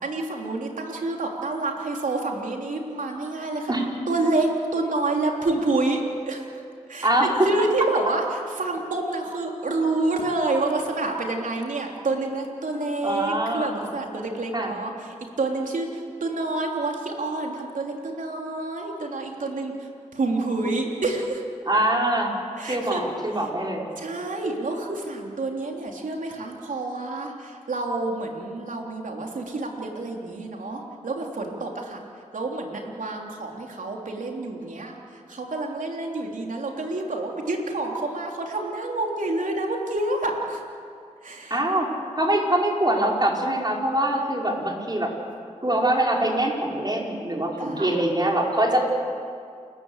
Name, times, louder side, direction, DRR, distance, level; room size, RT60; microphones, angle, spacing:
voice 1, 0.0-3.8 4.1-6.5 6.9-21.4 22.6-23.1 24.0-40.6 41.2-41.6 47.6-48.0, right 2 dB, 75° right, 1 dB, 3.6 m, -28 dB
voice 2, 7.0-7.7 13.0-13.7 14.5-14.7 21.7-23.9 41.5-41.9 42.2-45.1 45.6-48.9, right 1 dB, 30° right, -1 dB, 5.4 m, -23 dB
29.0 x 14.5 x 8.3 m, 2.3 s
cardioid pair, 45°, 13 cm